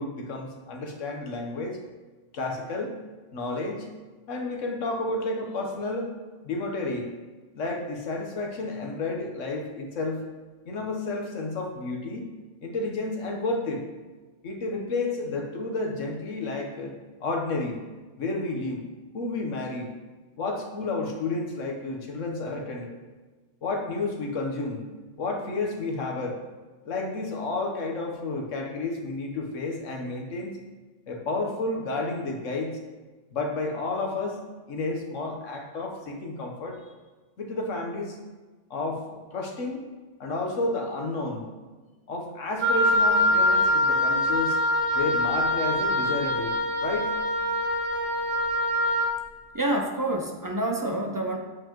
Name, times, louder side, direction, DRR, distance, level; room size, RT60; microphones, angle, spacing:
voice 1, 0.0-1.8 2.3-3.0 3.3-3.9 4.3-6.1 6.4-7.1 7.5-10.2 10.6-12.3 12.6-13.8 14.4-17.8 18.2-18.8 19.1-19.9 20.4-22.9 23.6-24.9 25.2-26.4 26.8-30.5 31.1-32.8 33.3-36.8 37.4-38.2 38.7-39.8 40.2-41.5 42.1-44.6 44.9-46.6 46.8-47.1, left 2 dB, 80° left, 1 dB, 1.4 m, -31 dB
Wind instrument woodwind instrument, 42.6-49.1, left 1 dB, 50° right, 1.0 m, -24 dB
voice 2, 49.5-51.4, right 1 dB, 30° right, 2 dB, 0.4 m, -27 dB
8.3 x 7.0 x 3.0 m, 1.3 s
omnidirectional pair, 1.3 m